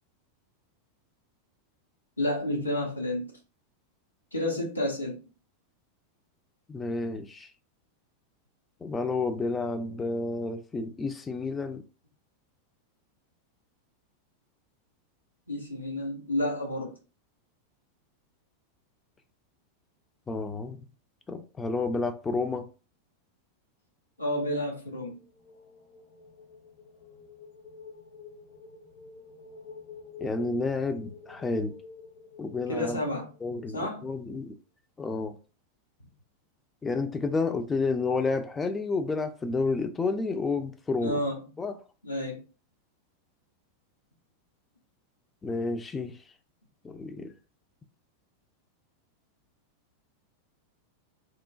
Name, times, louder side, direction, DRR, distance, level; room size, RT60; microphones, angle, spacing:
voice 1, 2.2-3.3 4.3-5.2 15.5-17.0 24.2-25.2 32.7-33.3 33.7-34.1 41.0-41.4 42.0-42.4, left 1 dB, 80° left, 0.7 m, -30 dB
voice 2, 6.7-7.5 8.8-11.8 20.3-20.8 21.3-22.7 30.2-31.8 32.4-33.0 33.4-34.5 35.0-35.4 36.8-41.2 41.6-41.7 45.4-46.2 46.8-47.3, left 3 dB, 15° left, 0.4 m, -30 dB
sound 1, 24.8-33.7, left 5 dB, 45° left, 0.7 m, -49 dB
2.9 x 2.1 x 2.3 m
figure-of-eight pair, 90°, 0 cm